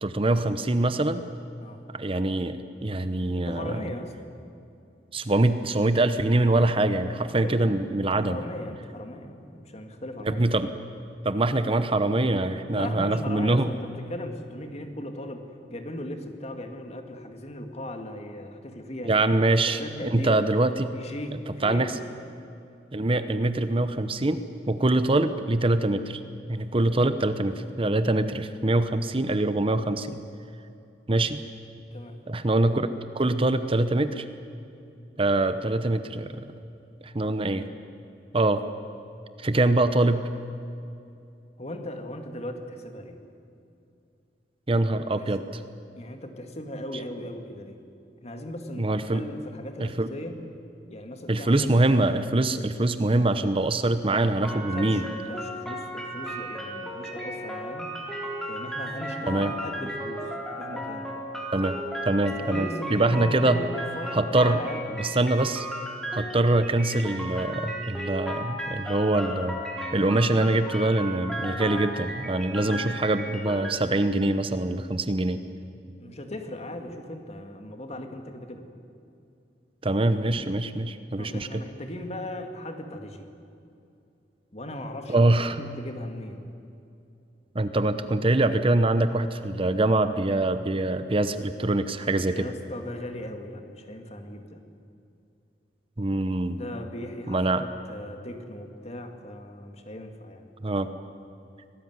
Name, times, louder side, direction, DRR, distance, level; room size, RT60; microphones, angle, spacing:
voice 1, 0.0-1.2 1.9-3.8 5.1-8.4 10.3-10.7 11.2-13.7 19.0-19.8 20.1-20.9 21.6-21.9 22.9-26.2 26.5-30.2 31.1-31.4 32.3-32.9 33.1-34.2 35.2-36.5 37.0-37.7 38.3-38.6 39.4-40.3 44.7-45.4 48.8-49.2 49.8-50.1 51.3-55.0 59.3-59.5 61.5-61.8 62.0-63.6 64.1-64.6 65.0-65.7 66.1-69.6 69.9-75.4 79.8-81.6 85.1-85.6 87.5-92.5 96.0-96.6 97.3-97.6 100.6-100.9, right 2 dB, 30° right, 11 dB, 0.9 m, -24 dB
voice 2, 3.4-4.1 7.4-10.4 12.7-19.1 19.7-20.4 20.8-22.1 31.9-32.2 41.6-43.2 44.7-45.3 46.0-47.8 48.2-50.4 50.9-51.7 54.7-58.0 58.5-60.3 60.6-61.1 62.4-65.2 76.0-78.7 81.2-83.3 84.5-86.5 92.3-94.6 96.5-100.4, left 1 dB, 40° left, 5 dB, 2.3 m, -38 dB
sound 1, 54.4-73.7, equal, 5° left, 3.6 m, -35 dB
25.0 x 18.5 x 9.6 m, 2.6 s
head